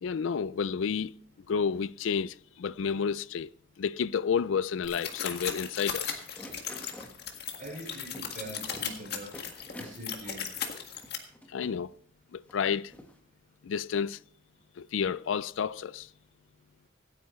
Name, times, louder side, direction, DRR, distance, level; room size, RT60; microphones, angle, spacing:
voice 1, 0.0-1.1 1.5-3.5 3.8-6.2 11.5-11.9 12.3-12.9 13.6-14.2 14.8-16.1, left 6 dB, 70° left, 0.4 m, -30 dB
sound 1, 4.8-11.2, left 8 dB, 55° left, 1.8 m, -37 dB
sound 2, 6.1-7.1 7.7-7.8 8.1-8.5 8.7-9.0 9.3-10.0 10.6-10.7 11.0-11.7 12.5-12.6 12.9-13.2, left 1 dB, 5° left, 1.4 m, -47 dB
voice 2, 7.6-9.3 9.7-10.5, right 1 dB, 40° right, 5.7 m, -43 dB
25.0 x 9.3 x 3.1 m
head